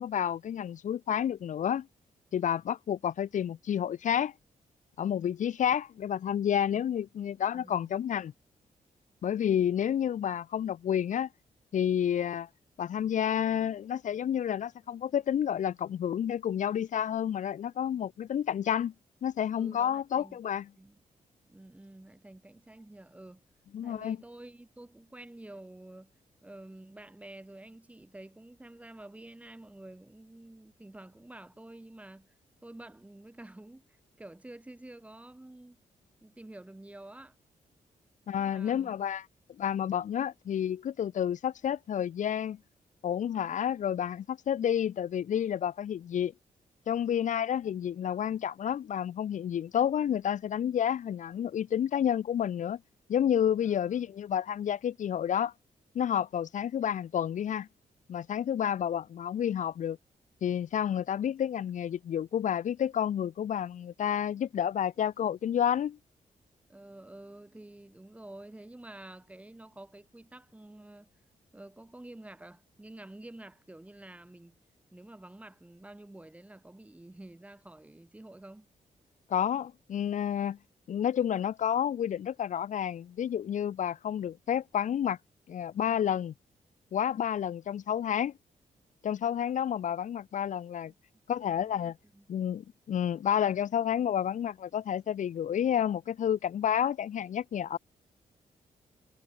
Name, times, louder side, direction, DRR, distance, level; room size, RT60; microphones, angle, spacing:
voice 1, 0.0-1.9 2.3-4.3 5.0-8.3 9.2-11.3 11.7-12.5 12.8-18.9 19.2-20.7 23.7-24.2 38.3-39.2 39.6-42.6 43.0-46.3 46.9-52.8 53.1-55.5 55.9-57.7 58.1-60.0 60.4-66.0 79.3-80.6 80.9-85.2 85.5-86.3 86.9-88.3 89.0-90.9 91.3-91.9 92.3-97.8, left 9 dB, 65° left, 1.1 m, -30 dB
voice 2, 7.5-7.9 19.6-20.4 20.8-21.0 21.5-23.4 23.8-26.1 26.4-32.3 32.6-35.8 36.2-37.4 38.3-38.9 53.6-54.1 66.7-71.1 71.5-74.6 74.9-78.7 91.4-92.4, right 1 dB, 10° right, 4.3 m, -49 dB
wide cardioid pair, 140°, 14 cm